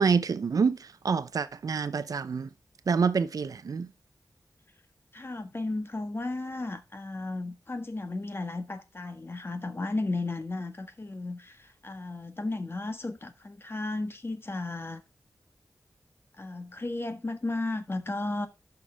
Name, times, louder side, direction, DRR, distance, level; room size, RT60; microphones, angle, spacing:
voice 1, 0.0-2.5 2.9-3.9, right 5 dB, 90° right, 0.6 m, -27 dB
voice 2, 5.1-15.0 16.4-18.5, left 2 dB, 40° left, 1.5 m, -34 dB
11.0 x 5.9 x 3.5 m
wide cardioid pair, 90°, 6 cm